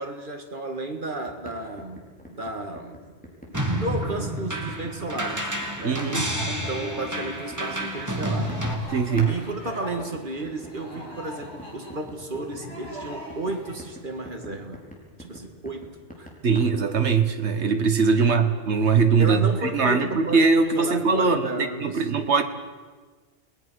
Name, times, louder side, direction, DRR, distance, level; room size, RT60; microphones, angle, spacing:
voice 1, 0.0-3.1 3.5-5.5 5.8-6.1 6.7-8.6 9.3-14.9 15.2-16.3 18.2-18.3 19.2-22.1, right 2 dB, 45° right, 5 dB, 2.3 m, -33 dB
sound 1, 1.3-9.4 9.6-16.6, equal, 5° left, 4.8 m, -44 dB
sound 2, 3.5-8.7, right 1 dB, 15° right, 2.7 m, -29 dB
sound 3, 5.3-13.8, equal, 90° left, 7.4 m, -42 dB
voice 2, 5.8-6.3 8.9-9.3 16.4-22.4, right 5 dB, 70° right, 7 dB, 1.8 m, -21 dB
30.0 x 20.0 x 6.4 m, 1.4 s
omnidirectional pair, 1.2 m